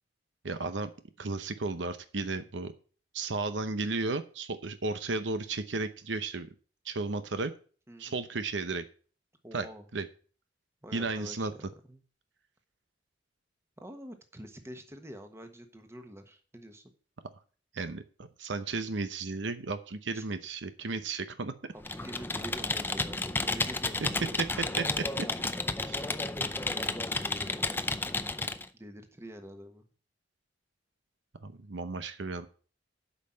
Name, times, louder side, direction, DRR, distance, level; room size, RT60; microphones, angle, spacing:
voice 1, 0.4-0.9 1.2-2.7 3.1-6.5 6.8-7.5 8.0-8.8 9.5-9.7 9.9-10.1 10.9-11.5 17.7-21.5 24.8-25.0 25.9-26.0 31.4-32.5, right 3 dB, 80° right, 10 dB, 0.8 m, -34 dB
voice 2, 7.9-8.2 9.4-9.8 10.8-11.5 11.9-12.0 13.8-16.9 20.1-20.2 21.7-24.4 26.6-28.0 28.7-29.9, equal, 15° right, 6 dB, 1.2 m, -46 dB
Computer keyboard, 21.8-28.6, left 3 dB, 10° left, 0.5 m, -32 dB
8.3 x 5.5 x 7.4 m, 0.40 s
head